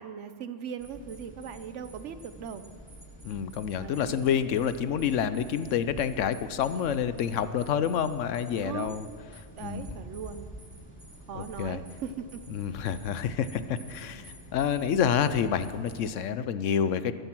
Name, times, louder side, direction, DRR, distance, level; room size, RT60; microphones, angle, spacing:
voice 1, 0.0-2.6 3.8-4.3 8.6-9.0 9.6-10.5 11.3-12.4, right 7 dB, 75° right, 11 dB, 1.1 m, -39 dB
sound 1, 0.8-16.1, right 1 dB, 10° left, 2.8 m, -48 dB
voice 2, 3.2-9.1 9.6-9.9 11.3-11.8 12.5-17.1, left 8 dB, 80° left, 13 dB, 1.0 m, -28 dB
14.5 x 13.0 x 6.1 m, 2.2 s
omnidirectional pair, 1.3 m